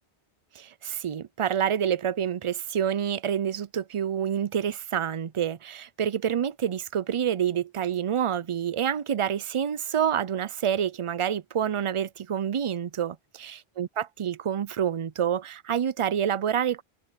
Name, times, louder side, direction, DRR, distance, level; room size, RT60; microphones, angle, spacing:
voice 1, 0.5-13.1 13.4-16.8, right 9 dB, 45° right, 0.4 m, -28 dB
omnidirectional pair, 1.0 m